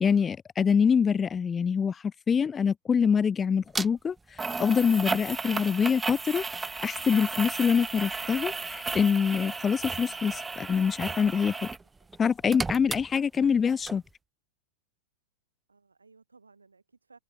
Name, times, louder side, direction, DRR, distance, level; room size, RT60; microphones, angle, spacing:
voice 1, 0.0-4.2 4.6-11.7 12.2-14.0, left 6 dB, 20° left, 0.3 m, -25 dB
sound 1, 3.7-3.9 4.4-11.8 12.1-13.6 13.9-14.0, right 4 dB, 10° right, 1.1 m, -34 dB
voice 2, 12.4-12.9 15.7-17.2, right 4 dB, 80° right, 7.2 m, -60 dB
open air
figure-of-eight pair, 90°, 0 cm